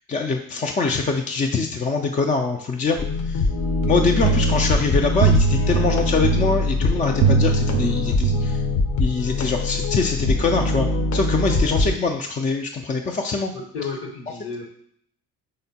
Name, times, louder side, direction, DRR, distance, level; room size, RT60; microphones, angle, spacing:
voice 1, 0.1-3.0 3.2-3.5 3.9-8.6 9.0-13.5, left 4 dB, 20° left, 3 dB, 0.3 m, -23 dB
sound 1, 3.0-12.0, left 3 dB, 40° left, 0.7 m, -23 dB
sound 2, 3.8-9.1, right 6 dB, 55° right, 0.5 m, -23 dB
voice 2, 11.4-11.7 13.5-14.6, left 4 dB, 60° left, 1 dB, 1.1 m, -33 dB
5.2 x 3.5 x 2.8 m, 0.65 s
hypercardioid pair, 50°, 46 cm